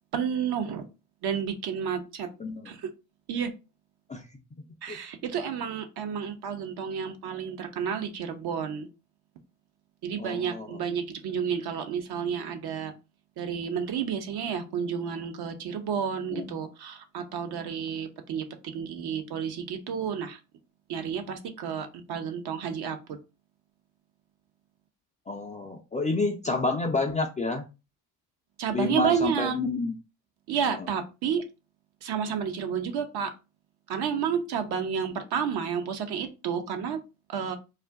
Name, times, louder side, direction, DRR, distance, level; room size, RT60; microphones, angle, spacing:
voice 1, 0.1-0.9 1.2-2.3 2.6-2.9 3.3-3.5 4.8-8.9 10.0-12.9 13.4-20.4 20.9-23.2 28.6-29.6 30.5-31.4 32.0-33.3 33.9-37.0 37.3-37.6, right 7 dB, 55° right, 6 dB, 0.8 m, -31 dB
voice 2, 2.4-2.7 4.1-4.2 4.9-5.0 10.2-10.8 16.3-16.6 25.3-27.6 28.7-29.9 30.8-30.9, left 3 dB, 15° left, 3 dB, 0.4 m, -29 dB
2.4 x 2.1 x 3.5 m, 0.28 s
hypercardioid pair, 55°, 47 cm